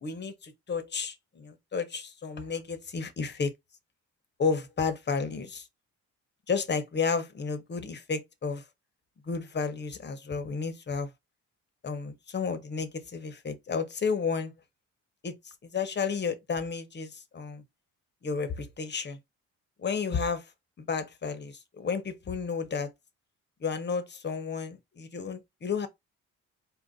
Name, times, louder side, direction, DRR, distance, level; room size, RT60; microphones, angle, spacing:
voice 1, 0.0-3.5 4.4-5.7 6.5-8.6 9.2-11.1 11.8-14.5 15.2-17.6 18.2-19.2 19.8-20.5 20.8-22.9 23.6-25.9, left 5 dB, 35° left, 1.0 m, -32 dB
4.2 x 2.6 x 4.0 m
cardioid pair, 90°, 30 cm